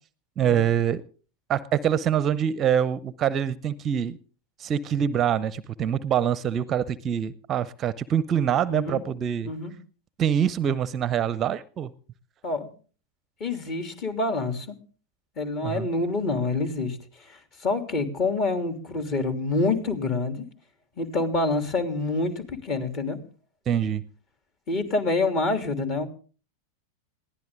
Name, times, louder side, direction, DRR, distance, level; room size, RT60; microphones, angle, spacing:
voice 1, 0.4-1.0 1.5-4.2 4.6-9.5 10.2-11.9 15.6-15.9 23.7-24.0, right 9 dB, 25° right, 0.7 m, -25 dB
voice 2, 8.7-9.0 9.4-9.7 12.4-12.7 13.4-14.8 15.4-20.4 21.0-23.2 24.7-26.1, left 3 dB, 35° left, 3.1 m, -27 dB
21.5 x 16.0 x 3.8 m
figure-of-eight pair, 90°, 0 cm